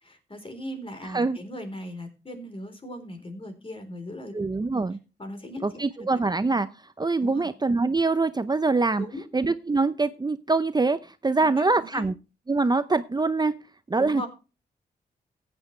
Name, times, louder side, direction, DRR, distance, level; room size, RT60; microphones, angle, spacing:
voice 1, 0.0-4.3 5.2-6.1 7.2-7.5 9.0-9.2 11.4-12.1 14.0-14.3, left 1 dB, 30° left, 6 dB, 4.0 m, -38 dB
voice 2, 4.3-5.0 5.6-6.7 7.0-9.1 9.3-12.1 12.5-13.5 13.9-14.2, right 3 dB, 25° right, 11 dB, 0.7 m, -24 dB
15.0 x 9.0 x 3.3 m, 0.32 s
cardioid pair, 55°, 17 cm